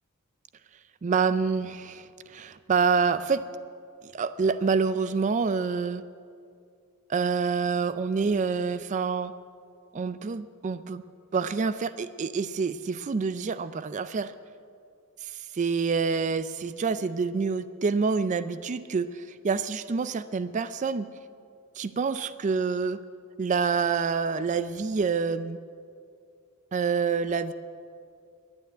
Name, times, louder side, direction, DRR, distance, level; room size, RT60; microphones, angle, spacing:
voice 1, 1.0-3.5 4.1-6.0 7.1-9.3 9.9-11.0 11.3-14.3 15.2-21.1 21.8-23.0 23.4-25.6 26.7-27.5, right 5 dB, 35° right, 14 dB, 0.3 m, -27 dB
11.5 x 9.8 x 9.1 m, 2.3 s
head